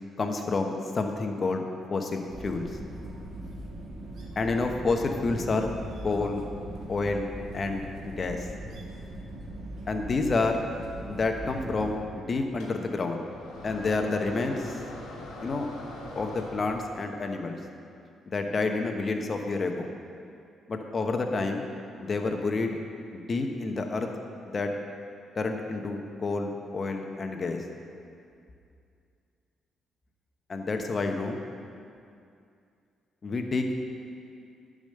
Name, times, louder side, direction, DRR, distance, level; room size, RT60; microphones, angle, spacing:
voice 1, 0.2-1.6 1.9-2.7 4.4-5.7 6.0-6.4 6.9-7.3 7.5-8.5 9.9-10.6 11.1-13.2 13.6-14.8 15.4-15.7 16.2-17.6 18.3-19.9 20.7-21.7 22.0-22.8 23.1-24.1 24.5-24.8 25.4-27.6 30.5-31.4 33.2-33.9, left 3 dB, 40° left, 4 dB, 1.0 m, -29 dB
sound 1, 2.3-12.0, right 1 dB, 60° right, 1.7 m, -40 dB
sound 2, 12.6-17.1, left 1 dB, 90° left, 1.5 m, -42 dB
10.5 x 5.1 x 6.6 m, 2.4 s
cardioid pair, 90°, 0 cm